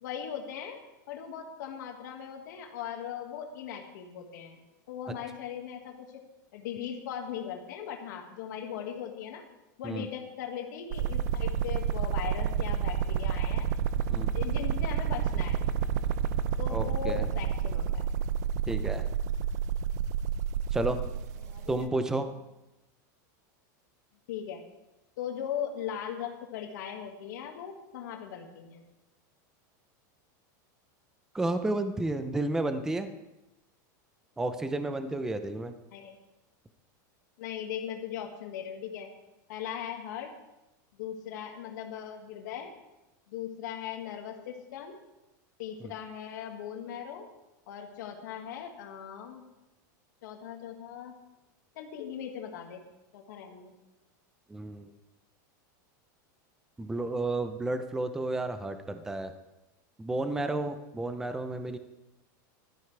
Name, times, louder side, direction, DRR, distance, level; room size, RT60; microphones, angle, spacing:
voice 1, 0.0-0.8 1.1-4.6 4.9-6.1 6.5-9.4 9.8-13.7 14.2-15.7 16.6-18.1 21.4-21.9 24.3-24.6 25.2-28.8 35.9-36.2 37.4-39.1 39.5-40.3 40.9-42.7 43.3-45.0 45.6-47.3 47.7-49.5 50.2-51.2 51.8-52.8 53.1-53.7, left 9 dB, 70° left, 3 dB, 1.9 m, -39 dB
sound 1, 10.9-21.9, right 8 dB, 60° right, 0.6 m, -30 dB
voice 2, 16.7-17.3 18.7-19.1 20.7-21.0 21.7-22.3 31.3-33.1 34.4-35.7 45.8-45.9 54.5-54.9 56.8-59.3 60.0-61.8, right 2 dB, 5° right, 9 dB, 0.5 m, -31 dB
16.0 x 13.0 x 3.4 m, 0.96 s
supercardioid pair, 165°, 10 cm